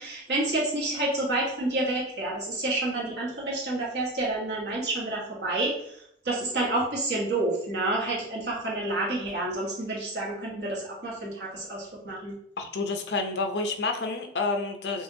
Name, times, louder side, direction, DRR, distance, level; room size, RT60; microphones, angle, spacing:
voice 1, 0.0-5.7 6.2-12.3, right 2 dB, 65° right, -4 dB, 1.3 m, -29 dB
voice 2, 12.6-15.0, left 3 dB, 70° left, 5 dB, 0.6 m, -29 dB
5.7 x 2.5 x 2.7 m, 0.70 s
head